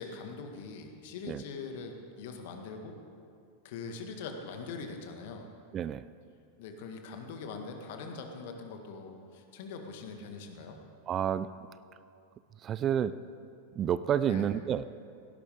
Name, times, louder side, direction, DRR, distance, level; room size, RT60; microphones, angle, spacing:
voice 1, 0.0-3.0 3.6-5.5 6.6-10.8 14.2-14.5, left 4 dB, 50° left, 4 dB, 1.9 m, -42 dB
voice 2, 5.7-6.1 11.1-11.5 12.6-13.2 13.8-14.8, right 9 dB, 30° right, 15 dB, 0.4 m, -29 dB
18.0 x 17.0 x 3.7 m, 2.4 s
figure-of-eight pair, 90°, 0 cm